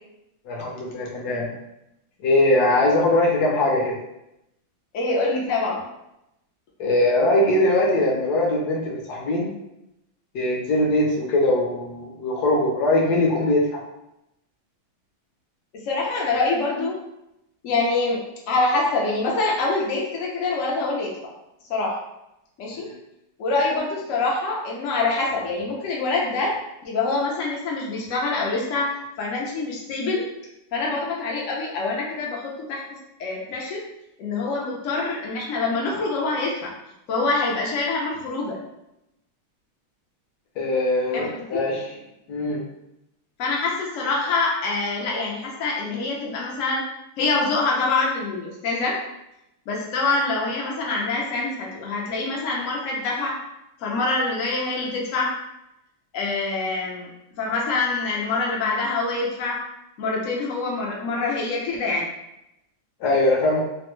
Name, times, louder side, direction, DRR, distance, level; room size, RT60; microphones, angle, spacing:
voice 1, 0.5-1.5 2.2-4.0 6.8-9.5 10.3-13.6 22.8-23.0 40.6-41.8 42.3-42.6 63.0-63.6, left 1 dB, 70° left, -2 dB, 1.0 m, -21 dB
voice 2, 4.9-5.8 15.8-17.0 17.6-21.1 21.7-22.0 22.6-22.9 23.4-26.5 26.8-30.3 30.7-33.8 34.2-36.7 37.1-38.6 41.1-41.6 43.4-46.8 47.2-49.0 49.7-53.3 53.8-55.3 56.1-57.1 57.4-59.6 60.0-62.1, left 3 dB, 85° left, -3 dB, 0.7 m, -25 dB
3.3 x 2.2 x 3.0 m, 0.86 s
omnidirectional pair, 2.3 m